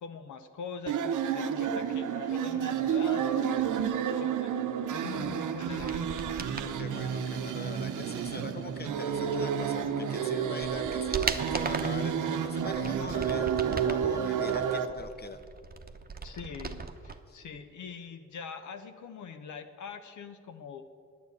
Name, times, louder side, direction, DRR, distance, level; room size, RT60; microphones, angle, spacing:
voice 1, 0.0-4.5 4.9-6.3 16.2-20.8, left 6 dB, 70° left, 8 dB, 0.7 m, -43 dB
sound 1, 0.9-14.9, right 8 dB, 75° right, 0.8 m, -30 dB
sound 2, 5.7-6.7 9.8-9.9 10.4-12.0 12.6-14.1 14.5-17.2 17.4-17.5, right 4 dB, 30° right, 0.9 m, -37 dB
voice 2, 6.8-15.4 17.3-17.4, left 4 dB, 30° left, 10 dB, 0.9 m, -42 dB
9.4 x 8.6 x 8.1 m, 2.2 s
supercardioid pair, 45°, 31 cm